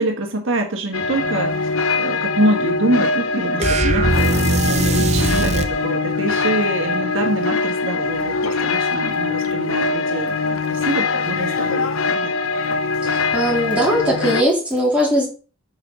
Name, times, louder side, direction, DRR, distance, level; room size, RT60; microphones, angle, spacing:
voice 1, 0.0-12.3, right 1 dB, 65° right, 3 dB, 1.5 m, -25 dB
sound 1, 0.9-14.4, left 4 dB, 80° left, 0.8 m, -22 dB
sound 2, 3.6-5.8, right 2 dB, 30° right, 0.8 m, -19 dB
voice 2, 13.0-15.3, equal, 5° right, -4 dB, 3.2 m, -19 dB
5.9 x 5.7 x 6.1 m, 0.36 s
head